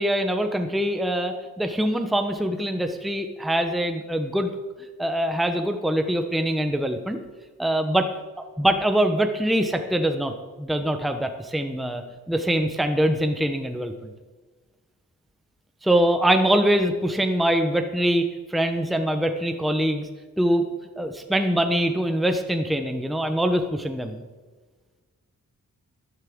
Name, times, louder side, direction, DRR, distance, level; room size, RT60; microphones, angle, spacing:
voice 1, 0.0-4.5 5.0-7.2 7.6-8.0 8.6-10.3 10.6-14.1 15.8-18.2 18.5-20.1 20.4-20.6 21.0-24.2, right 1 dB, ahead, 6 dB, 0.9 m, -23 dB
13.0 x 12.0 x 3.7 m, 1.3 s
wide cardioid pair, 95°, 34 cm